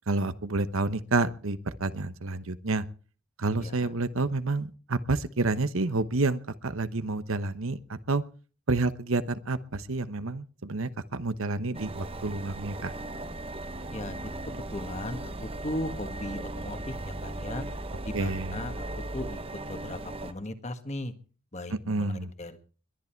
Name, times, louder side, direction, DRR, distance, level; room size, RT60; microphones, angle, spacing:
voice 1, 0.1-2.8 3.4-8.2 8.7-12.9 18.1-18.6 21.9-22.3, right 3 dB, 65° right, 13 dB, 1.0 m, -29 dB
voice 2, 3.6-3.9 13.9-17.6 18.0-18.8 19.1-19.4 19.7-21.1 21.5-22.6, left 1 dB, 30° left, 9 dB, 1.6 m, -37 dB
sound 1, 11.7-20.3, right 1 dB, 25° right, 1.0 m, -37 dB
22.0 x 11.0 x 4.5 m, 0.38 s
head